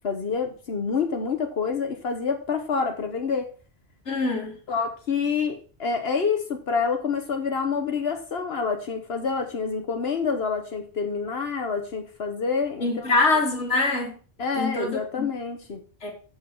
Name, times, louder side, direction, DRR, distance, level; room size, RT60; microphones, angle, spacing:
voice 1, 0.0-3.5 4.7-13.2 14.4-15.8, left 5 dB, 65° left, 1.3 m, -27 dB
voice 2, 4.1-4.5 12.8-14.1 14.5-15.3 16.0-16.1, left 3 dB, 90° left, 2.1 m, -24 dB
7.2 x 6.2 x 6.0 m
omnidirectional pair, 1.1 m